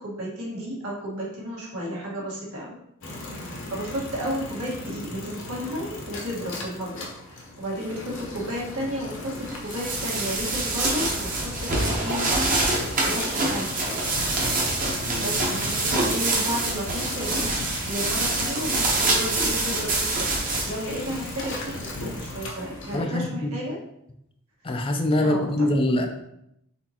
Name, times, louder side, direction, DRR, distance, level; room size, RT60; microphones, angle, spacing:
voice 1, 0.0-2.8 3.4-12.3 12.8-14.0 14.8-17.5 17.8-23.8 25.2-25.5, equal, 80° right, -4 dB, 1.6 m, -33 dB
sound 1, 3.0-23.0, left 2 dB, 60° left, 0.9 m, -37 dB
sound 2, 9.5-22.0, right 2 dB, 40° right, 0.9 m, -26 dB
voice 2, 15.0-15.4 22.9-23.5 24.6-26.1, left 1 dB, 25° left, 5 dB, 0.4 m, -24 dB
4.2 x 4.0 x 2.9 m, 0.78 s
head